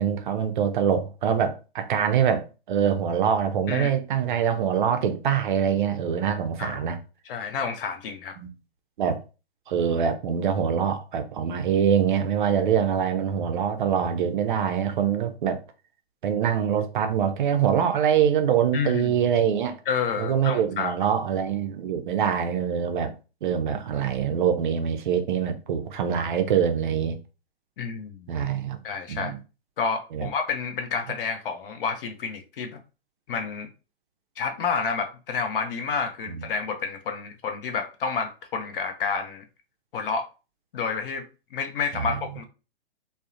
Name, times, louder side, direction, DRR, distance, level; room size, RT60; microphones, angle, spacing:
voice 1, 0.0-7.0 8.4-8.5 9.0-9.2 9.7-15.6 16.2-19.8 20.2-23.1 23.4-27.2 28.3-28.8 29.1-29.4 30.1-30.3 36.3-36.4 41.9-42.2, right 8 dB, 50° right, 0.4 m, -24 dB
voice 2, 7.3-8.4 18.7-19.1 19.9-20.9 27.8-28.3 28.8-29.4 29.8-32.8 33.3-33.7 34.4-39.4 39.9-40.2 40.7-41.2 41.5-42.4, left 5 dB, 55° left, 0.6 m, -29 dB
2.7 x 2.0 x 2.4 m
hypercardioid pair, 135°, 32 cm